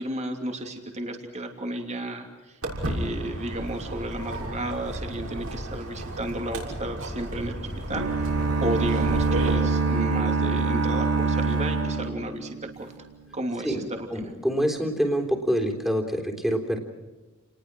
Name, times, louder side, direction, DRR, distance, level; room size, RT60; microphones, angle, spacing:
voice 1, 0.0-2.6 2.8-8.3 8.6-12.9 13.3-14.1, right 1 dB, 30° right, 4 dB, 2.9 m, -33 dB
Walk footsteps, 2.6-9.5, right 1 dB, 65° right, 6.6 m, -34 dB
sound 1, 7.9-12.9, right 3 dB, 85° right, 3.8 m, -25 dB
voice 2, 14.1-16.8, equal, ahead, 3 dB, 3.6 m, -26 dB
29.5 x 20.5 x 6.2 m, 1.2 s
head